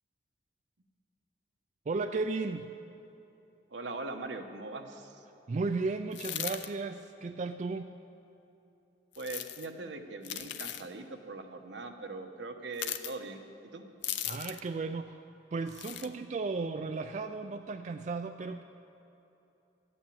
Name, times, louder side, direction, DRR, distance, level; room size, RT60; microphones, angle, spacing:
voice 1, 1.9-2.7 5.5-7.9 14.2-15.2 15.5-18.6, right 3 dB, 40° right, 8 dB, 0.3 m, -34 dB
voice 2, 3.7-5.2 9.2-13.8, right 3 dB, 75° right, 5 dB, 1.0 m, -41 dB
sound 1, 6.1-6.7 9.1-9.7 10.2-10.9 12.7-13.1 14.0-14.7 15.7-16.1, left 11 dB, 75° left, 0.6 m, -37 dB
13.0 x 9.0 x 8.5 m, 3.0 s
head